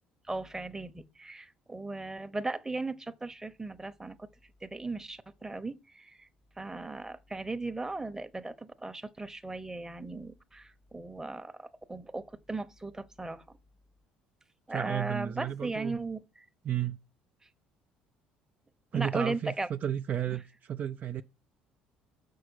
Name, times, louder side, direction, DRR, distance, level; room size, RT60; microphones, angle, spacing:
voice 1, 0.3-4.3 4.6-6.3 6.6-13.6 14.7-16.2 18.9-19.7, right 3 dB, 15° right, 0.8 m, -37 dB
voice 2, 14.7-16.0 16.6-17.0 18.9-21.2, right 10 dB, 50° right, 0.4 m, -33 dB
6.3 x 4.7 x 6.3 m
hypercardioid pair, 60°, 4 cm